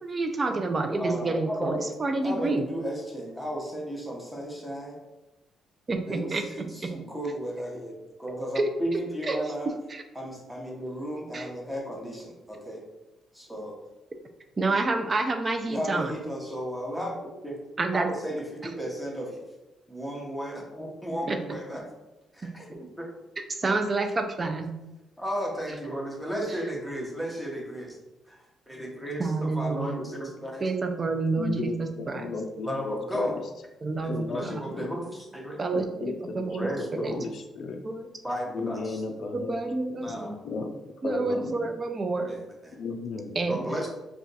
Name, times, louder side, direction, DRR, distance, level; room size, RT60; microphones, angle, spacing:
voice 1, 0.0-2.7 5.9-6.9 8.5-9.4 9.7-10.0 11.3-11.5 14.6-16.2 17.8-18.1 18.6-18.7 21.3-21.6 23.4-24.7 29.2-30.0 30.6-32.3 33.8-34.8 35.6-37.2 37.8-38.0 39.3-40.4 41.0-42.3 43.4-43.7, right 3 dB, 35° right, 6 dB, 0.4 m, -29 dB
voice 2, 0.9-1.8 2.2-5.0 6.1-6.4 6.7-9.7 10.1-12.8 13.3-13.8 15.7-17.1 17.4-17.6 17.9-19.4 19.9-21.8 22.3-23.1 25.2-28.0 28.3-28.4 28.7-30.6 32.6-33.4 34.3-35.6 36.6-37.2 38.2-39.0 40.0-40.4 41.1-41.4 42.3-42.4 42.6-42.8 43.5-43.9, equal, ahead, -2 dB, 0.9 m, -34 dB
voice 3, 31.4-33.4 34.1-35.0 35.7-36.5 36.8-37.8 38.5-39.6 39.9-40.7 41.0-41.6 42.8-43.4, left 3 dB, 65° left, 4 dB, 0.3 m, -34 dB
2.5 x 2.3 x 3.9 m, 0.99 s
cardioid pair, 90°, 0 cm